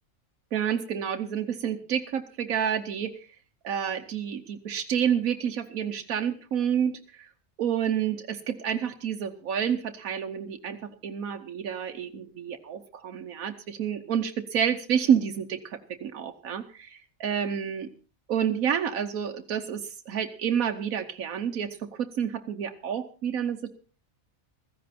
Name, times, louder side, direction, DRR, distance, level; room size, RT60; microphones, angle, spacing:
voice 1, 0.5-3.1 3.6-7.3 7.6-17.9 18.3-23.7, right 8 dB, 90° right, 5 dB, 1.4 m, -29 dB
15.5 x 15.0 x 4.2 m, 0.37 s
omnidirectional pair, 1.4 m